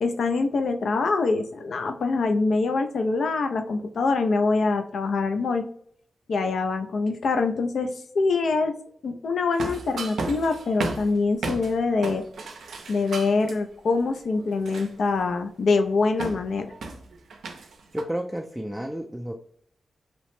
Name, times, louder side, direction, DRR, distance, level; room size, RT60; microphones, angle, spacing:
voice 1, 0.0-5.6 6.3-8.7 9.0-12.2 12.9-16.7, left 3 dB, 80° left, 7 dB, 0.3 m, -24 dB
sound 1, 9.5-11.7 12.0-13.5 14.2-15.2 16.2-18.0, right 3 dB, 90° right, 0.4 m, -34 dB
voice 2, 17.9-19.4, equal, 5° right, 1 dB, 0.3 m, -31 dB
2.9 x 2.1 x 3.0 m, 0.66 s
cardioid pair, 75°, 0 cm